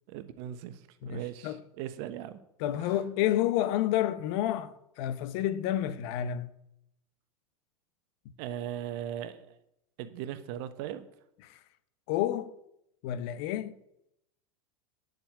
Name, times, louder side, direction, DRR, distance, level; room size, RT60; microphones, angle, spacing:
voice 1, 0.1-2.4 8.4-9.5 10.0-11.0, right 11 dB, 50° right, 1.2 m, -38 dB
voice 2, 1.0-1.6 2.6-6.5 11.4-11.6 12.1-12.5 13.0-13.8, left 12 dB, 50° left, 1.0 m, -30 dB
9.6 x 7.2 x 8.1 m
figure-of-eight pair, 90°, 18 cm